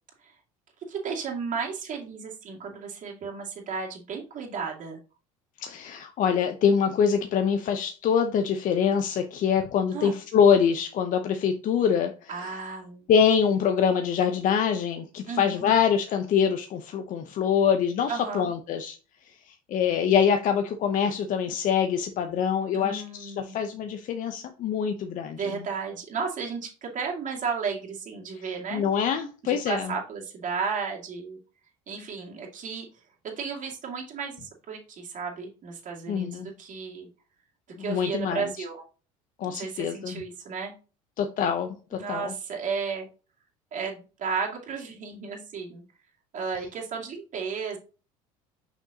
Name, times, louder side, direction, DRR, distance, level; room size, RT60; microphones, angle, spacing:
voice 1, 0.9-5.0 9.9-10.2 12.3-13.1 15.3-15.7 18.1-18.5 22.7-23.6 25.3-28.9 29.4-31.4 31.9-32.9 33.4-37.1 37.8-38.8 39.4-40.7 41.9-43.1 43.7-45.8 46.3-47.8, right 5 dB, 45° right, -1 dB, 2.4 m, -34 dB
voice 2, 5.6-12.5 13.1-19.0 19.5-25.6 28.7-29.9 36.1-36.5 37.9-38.5 39.4-40.2 41.2-42.3, left 7 dB, 50° left, 6 dB, 0.8 m, -25 dB
6.4 x 6.0 x 2.9 m, 0.35 s
hypercardioid pair, 75°, 18 cm